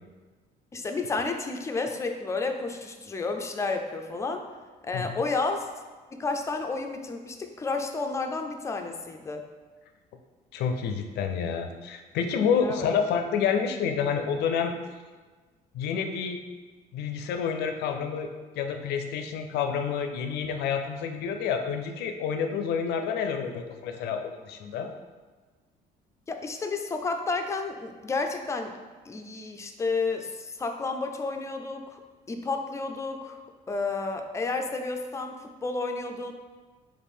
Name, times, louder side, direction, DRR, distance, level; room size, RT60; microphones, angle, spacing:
voice 1, 0.7-4.4 4.8-5.7 6.1-9.4 12.6-13.0 26.3-28.7 29.1-32.0 32.3-33.4 33.7-36.3, left 3 dB, 15° left, 4 dB, 0.4 m, -31 dB
voice 2, 10.5-14.7 15.7-16.4 16.9-18.3 18.6-24.9, left 6 dB, 75° left, 6 dB, 0.5 m, -28 dB
3.3 x 2.6 x 4.3 m, 1.4 s
cardioid pair, 110°, 17 cm